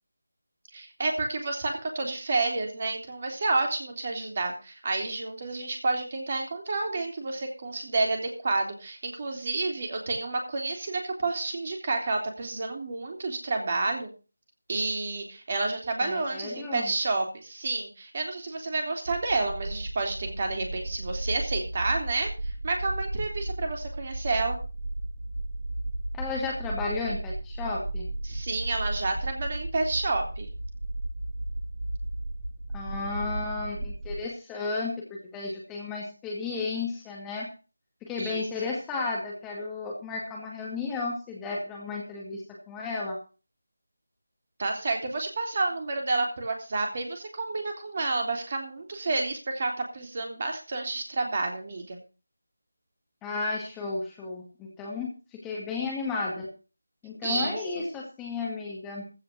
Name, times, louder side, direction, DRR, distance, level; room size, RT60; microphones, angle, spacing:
voice 1, 0.7-14.1 14.7-24.6 28.2-30.5 38.2-38.7 44.6-52.0 57.2-57.8, right 3 dB, 35° right, 3 dB, 3.5 m, -30 dB
voice 2, 16.0-16.9 26.1-28.1 32.7-37.5 38.0-43.2 53.2-56.5 57.0-59.1, left 3 dB, 10° left, -2 dB, 2.1 m, -33 dB
sound 1, 19.0-34.2, right 1 dB, 55° right, 2.6 m, -34 dB
15.5 x 5.2 x 8.2 m, 0.34 s
figure-of-eight pair, 160°, 0 cm